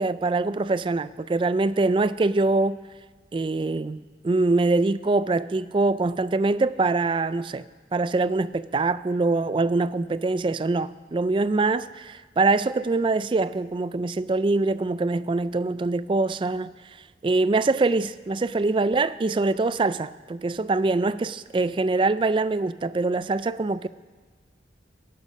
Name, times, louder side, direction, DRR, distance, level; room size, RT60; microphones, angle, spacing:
voice 1, 0.0-2.8 3.3-7.6 7.9-16.7 17.2-23.9, right 3 dB, 30° right, 0.3 m, -24 dB
17.0 x 11.5 x 5.3 m
head